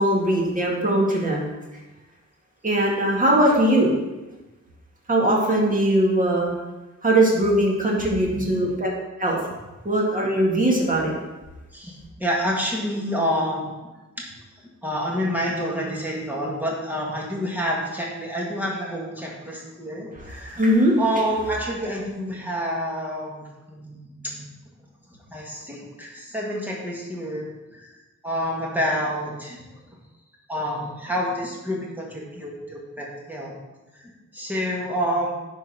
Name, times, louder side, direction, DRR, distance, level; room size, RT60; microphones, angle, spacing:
voice 1, 0.0-1.5 2.6-3.9 5.1-6.5 7.0-8.9 9.2-9.4 9.8-11.1 20.2-21.0, right 1 dB, 25° right, -2 dB, 2.0 m, -20 dB
voice 2, 8.2-8.6 11.7-13.7 14.2-14.3 14.8-20.6 21.0-24.4 25.3-27.9 28.2-29.6 30.5-33.6 33.9-35.3, equal, 5° right, -3 dB, 1.9 m, -28 dB
11.0 x 4.5 x 5.7 m, 1.1 s
wide cardioid pair, 170°, 30 cm